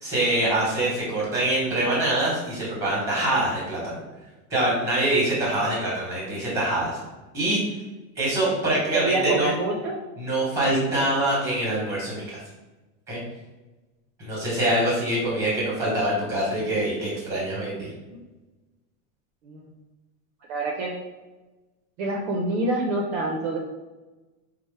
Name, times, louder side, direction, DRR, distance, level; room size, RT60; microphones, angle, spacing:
voice 1, 0.0-4.0 4.5-7.0 7.3-7.6 8.2-9.5 10.2-12.4 13.1-13.2 14.2-17.9, right 1 dB, 5° right, -5 dB, 0.9 m, -24 dB
voice 2, 8.9-9.9 18.1-18.2 19.4-19.6 20.5-20.9 22.0-23.6, right 2 dB, 50° right, 0 dB, 0.5 m, -26 dB
4.2 x 2.0 x 3.2 m, 1.1 s
supercardioid pair, 180°, 42 cm